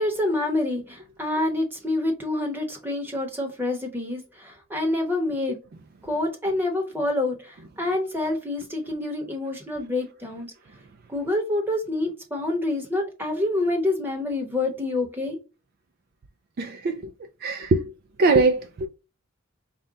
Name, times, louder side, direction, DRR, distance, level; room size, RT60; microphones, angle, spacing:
voice 1, 0.0-5.6 6.0-10.5 11.1-15.4, left 2 dB, 10° right, 1.0 m, -27 dB
voice 2, 16.6-17.1 17.4-17.9 18.2-18.9, right 3 dB, 45° right, 0.3 m, -22 dB
5.2 x 2.2 x 3.6 m
head